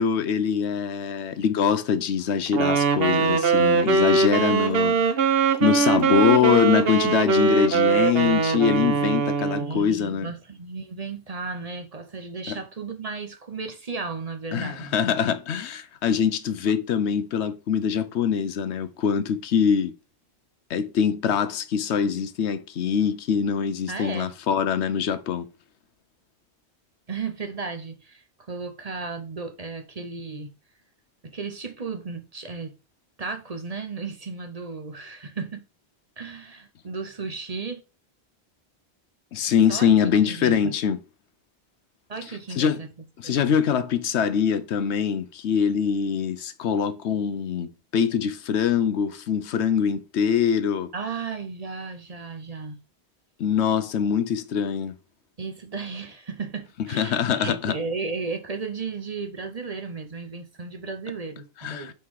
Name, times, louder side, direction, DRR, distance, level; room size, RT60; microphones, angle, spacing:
voice 1, 0.0-5.0 5.6-10.3 12.5-12.6 14.5-19.9 20.7-25.5 39.3-41.0 42.6-42.8 43.2-50.9 53.4-54.9 56.9-57.7 61.6-61.9, left 7 dB, 85° left, 1.0 m, -23 dB
Wind instrument woodwind instrument, 2.5-9.7, right 5 dB, 65° right, 1.1 m, -21 dB
voice 2, 9.6-14.9 23.9-24.3 27.1-30.5 31.2-32.7 33.2-35.6 36.2-37.8 39.7-39.9 40.2-40.7 42.1-42.9 43.2-43.3 50.9-52.8 55.4-61.9, right 4 dB, 40° right, 0.8 m, -34 dB
5.7 x 4.4 x 4.8 m
omnidirectional pair, 1.1 m